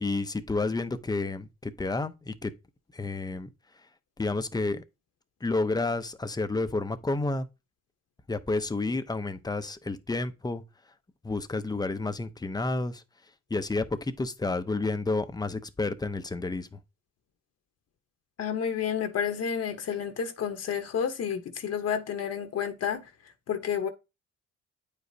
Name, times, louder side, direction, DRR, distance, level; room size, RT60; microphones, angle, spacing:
voice 1, 0.0-2.5 2.9-3.5 4.2-4.8 5.4-7.5 8.3-10.6 11.2-13.0 13.5-16.8, left 2 dB, 15° left, 0.6 m, -30 dB
voice 2, 18.4-23.0 23.5-23.9, left 8 dB, 55° left, 1.0 m, -30 dB
9.0 x 5.0 x 2.7 m
cardioid pair, 90°, 30 cm